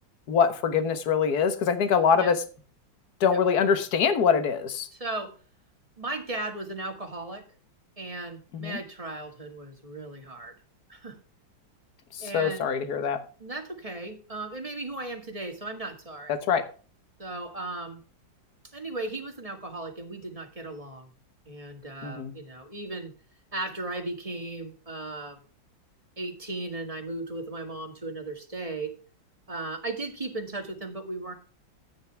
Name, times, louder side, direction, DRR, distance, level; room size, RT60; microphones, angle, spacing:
voice 1, 0.3-2.4 3.2-4.9 8.5-8.8 12.2-13.2 16.3-16.7 22.0-22.3, left 6 dB, 55° left, 1.8 m, -24 dB
voice 2, 4.9-5.3 6.0-7.4 8.0-10.5 10.9-11.2 12.2-12.6 13.4-16.3 17.2-18.0 18.7-21.1 21.5-23.1 23.5-25.4 26.2-28.9 29.5-31.3, right 2 dB, 20° right, 2.0 m, -36 dB
14.0 x 9.5 x 3.5 m
omnidirectional pair, 2.1 m